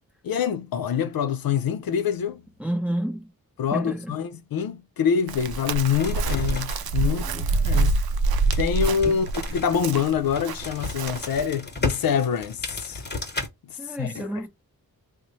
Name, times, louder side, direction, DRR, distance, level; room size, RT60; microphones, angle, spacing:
voice 1, 0.2-2.4 3.6-8.0 8.6-13.0 13.6-14.3, left 7 dB, 75° left, 0.5 m, -26 dB
voice 2, 2.6-3.3 3.7-4.2 7.0-7.6 9.0-9.2 13.8-14.5, right 1 dB, 5° right, 0.7 m, -30 dB
Chirp tweet, 5.3-11.5, right 3 dB, 90° right, 0.5 m, -26 dB
sound 1, 6.0-7.1 7.5-7.8 8.5-13.5, left 2 dB, 30° left, 1.0 m, -33 dB
3.0 x 2.1 x 4.0 m
cardioid pair, 60°, 36 cm